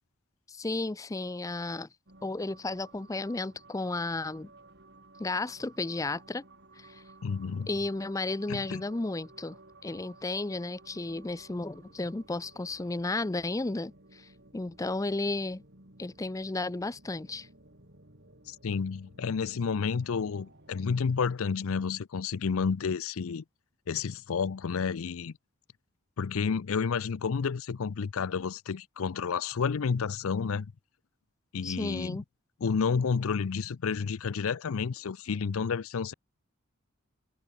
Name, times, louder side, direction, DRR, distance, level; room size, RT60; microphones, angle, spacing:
voice 1, 0.5-1.9 2.2-4.5 5.2-6.4 6.8-7.0 7.7-9.6 9.8-15.6 16.0-17.5 31.6-32.2, left 2 dB, 15° left, 0.4 m, -33 dB
sound 1, 2.1-20.9, right 2 dB, 50° right, 5.7 m, -56 dB
voice 2, 7.2-7.7 8.5-8.8 18.5-23.4 23.9-25.3 26.2-30.7 31.5-32.2 32.6-36.1, left 5 dB, 75° left, 0.5 m, -30 dB
head